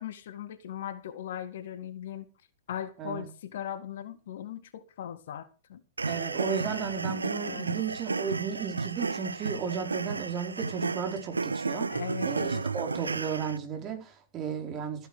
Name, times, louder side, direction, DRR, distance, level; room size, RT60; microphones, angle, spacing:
voice 1, 0.0-2.3 2.7-5.8 7.4-7.7 11.9-12.7, left 10 dB, 55° left, 1.8 m, -39 dB
sound 1, 6.0-13.6, right 4 dB, 80° right, 0.6 m, -33 dB
voice 2, 6.1-11.9 12.2-15.1, right 7 dB, 30° right, 4.6 m, -34 dB
15.0 x 9.9 x 5.1 m
figure-of-eight pair, 110°, 0 cm